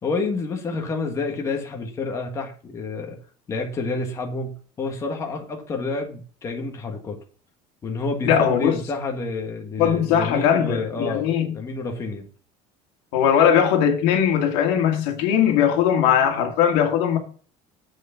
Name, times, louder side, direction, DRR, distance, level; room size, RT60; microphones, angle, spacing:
voice 1, 0.0-3.2 3.5-7.2 7.8-12.3, left 3 dB, 20° left, 1.6 m, -29 dB
voice 2, 8.2-8.8 9.8-11.5 13.1-17.2, left 8 dB, 90° left, 2.0 m, -19 dB
7.7 x 6.4 x 5.8 m
cardioid pair, 175°, 14 cm